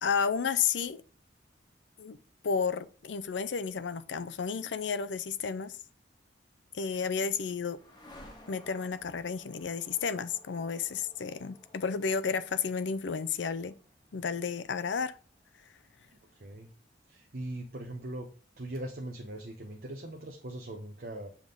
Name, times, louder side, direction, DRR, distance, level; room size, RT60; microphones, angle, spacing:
voice 1, 0.0-1.0 2.0-2.2 2.4-5.8 6.7-7.8 8.5-13.7 14.1-15.1, left 6 dB, 70° left, 0.5 m, -32 dB
sound 1, 6.6-16.6, left 1 dB, 25° left, 1.3 m, -58 dB
voice 2, 16.1-16.7 17.1-18.3 18.6-21.3, right 1 dB, 55° right, 0.8 m, -40 dB
7.2 x 3.6 x 3.8 m
head